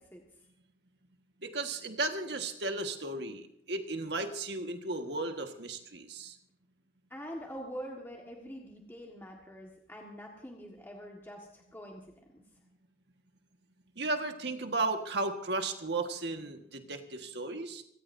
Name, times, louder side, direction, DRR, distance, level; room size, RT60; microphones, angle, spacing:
voice 1, 1.4-6.4 14.0-17.8, right 2 dB, 60° right, 5 dB, 1.6 m, -35 dB
voice 2, 7.1-12.0, equal, 10° left, -1 dB, 1.7 m, -44 dB
26.0 x 17.0 x 2.7 m, 0.71 s
head